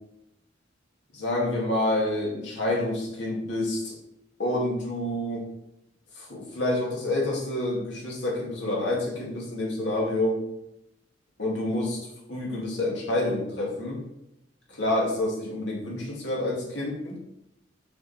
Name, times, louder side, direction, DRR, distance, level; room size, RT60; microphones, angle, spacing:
voice 1, 1.1-3.9 4.4-5.4 6.2-10.4 11.4-12.0 12.3-14.0 14.7-17.2, left 1 dB, 70° left, -3 dB, 2.4 m, -28 dB
6.6 x 5.4 x 4.3 m, 0.82 s
head